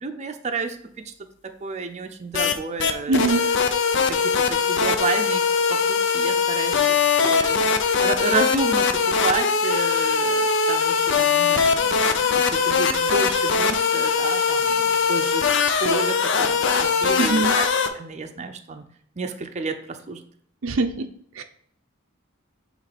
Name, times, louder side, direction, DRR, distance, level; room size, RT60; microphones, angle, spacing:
voice 1, 0.0-0.8 1.6-3.5 4.1-5.4 5.7-7.0 7.2-7.6 8.0-15.5 15.8-17.7 17.9-18.8 19.2-20.2, right 3 dB, 35° right, 6 dB, 0.6 m, -30 dB
sound 1, 2.3-2.5 2.8-17.9, left 5 dB, 65° left, 0.6 m, -21 dB
voice 2, 3.1-3.5 17.2-17.6 20.6-21.1 21.3-21.4, right 3 dB, 85° right, 7 dB, 0.6 m, -22 dB
8.0 x 3.2 x 4.1 m, 0.62 s
head